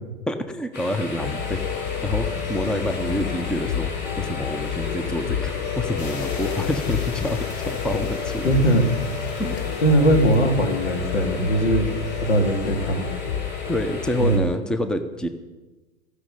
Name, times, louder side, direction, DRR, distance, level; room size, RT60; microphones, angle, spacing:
voice 1, 0.3-1.7 2.0-3.9 4.2-8.5 9.4-9.6 11.8-12.0 13.7-15.3, left 1 dB, ahead, 9 dB, 0.8 m, -27 dB
sound 1, 0.7-14.4, left 1 dB, 30° left, 4.0 m, -35 dB
sound 2, 1.2-14.6, left 10 dB, 45° left, 0.8 m, -30 dB
sound 3, 6.0-11.6, left 3 dB, 65° left, 3.0 m, -42 dB
voice 2, 8.4-8.8 9.8-11.8 12.2-13.1 14.2-14.4, right 1 dB, 85° left, 3 dB, 2.5 m, -20 dB
14.5 x 6.5 x 8.5 m, 1.2 s
hypercardioid pair, 100°, 34 cm